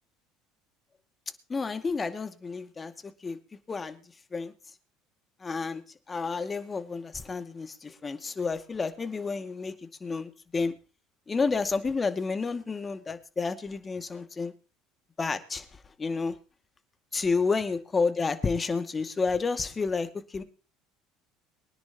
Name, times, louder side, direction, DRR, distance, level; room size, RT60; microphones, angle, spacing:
voice 1, 1.5-3.4 3.7-4.0 4.3-4.5 5.4-5.8 6.1-10.7 11.3-14.5 15.2-16.4 17.1-20.4, left 4 dB, 25° left, 2.2 m, -30 dB
23.5 x 10.5 x 3.0 m
hypercardioid pair, 65°, 0 cm